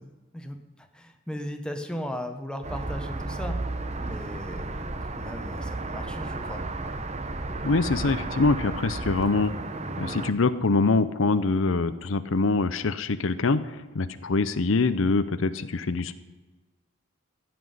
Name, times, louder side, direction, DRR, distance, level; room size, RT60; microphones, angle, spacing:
voice 1, 0.0-3.6 4.0-6.6, equal, 5° left, 5 dB, 1.2 m, -37 dB
sound 1, 2.6-10.3, right 2 dB, 35° right, 1.0 m, -33 dB
voice 2, 7.6-9.5 10.0-16.2, left 3 dB, 70° left, 13 dB, 0.7 m, -24 dB
15.5 x 6.1 x 9.5 m, 1.2 s
head